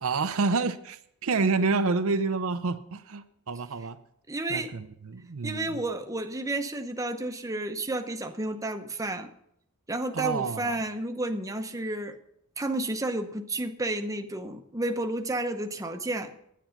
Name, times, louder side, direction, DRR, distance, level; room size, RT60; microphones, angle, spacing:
voice 1, 0.0-4.0 4.5-5.8 10.1-10.8, right 4 dB, 70° right, 9 dB, 0.6 m, -28 dB
voice 2, 4.3-4.7 5.4-9.3 9.9-12.2 12.6-16.3, right 2 dB, 15° right, 5 dB, 0.8 m, -31 dB
10.5 x 9.1 x 5.8 m, 0.72 s
head